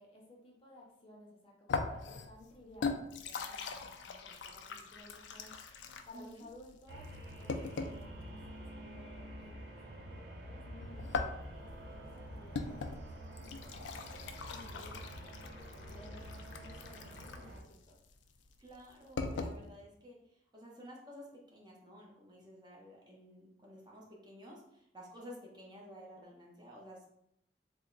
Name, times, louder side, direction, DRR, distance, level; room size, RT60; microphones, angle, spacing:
voice 1, 0.0-5.6 6.0-11.3 11.5-13.8 14.5-18.0, left 1 dB, 30° left, -2 dB, 0.6 m, -57 dB
sound 1, 1.7-8.1 10.8-19.6, left 4 dB, 75° left, 0.4 m, -41 dB
voice 2, 6.1-6.5 18.6-20.2 20.5-27.1, equal, 25° right, -3 dB, 0.7 m, -52 dB
sound 2, 6.9-17.6, equal, 90° right, 0.6 m, -48 dB
3.4 x 2.1 x 3.8 m, 0.76 s
head